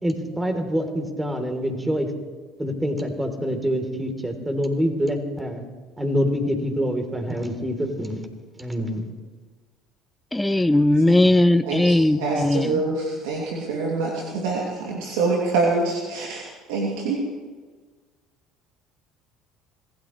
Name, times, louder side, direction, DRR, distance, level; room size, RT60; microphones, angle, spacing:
voice 1, 0.0-2.1 2.6-5.6 6.0-8.2 8.6-9.1, equal, 10° right, 4 dB, 3.4 m, -26 dB
voice 2, 10.3-12.8, left 1 dB, 10° left, 10 dB, 0.6 m, -18 dB
voice 3, 11.6-17.3, right 3 dB, 80° right, -3 dB, 2.6 m, -25 dB
26.0 x 16.5 x 3.2 m, 1.4 s
hypercardioid pair, 75°, 0 cm